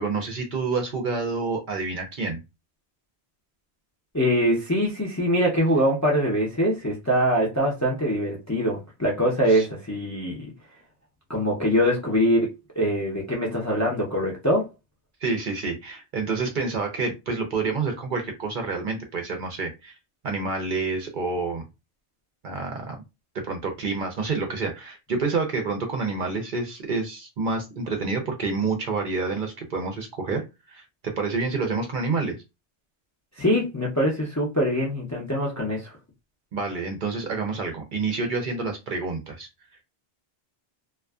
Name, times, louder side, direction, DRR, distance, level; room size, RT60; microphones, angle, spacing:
voice 1, 0.0-2.4 9.5-9.7 15.2-20.0 20.2-21.6 22.4-23.0 23.3-32.4 36.5-39.5, right 4 dB, 60° right, 0.6 m, -28 dB
voice 2, 4.1-10.5 11.3-14.7 33.4-35.9, equal, 20° left, 0.4 m, -23 dB
2.5 x 2.3 x 2.3 m
omnidirectional pair, 1.1 m